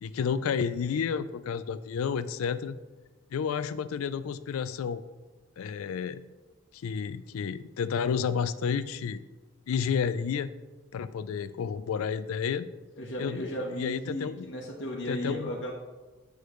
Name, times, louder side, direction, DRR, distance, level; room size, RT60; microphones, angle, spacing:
voice 1, 0.0-2.8 3.3-5.0 5.6-6.2 6.8-9.2 9.7-10.5 10.9-12.7 13.2-13.5 13.8-14.5 15.1-15.5, left 6 dB, 90° left, 14 dB, 0.3 m, -31 dB
voice 2, 13.0-15.7, equal, 55° left, -4 dB, 1.1 m, -35 dB
8.1 x 6.4 x 3.1 m, 1.2 s
head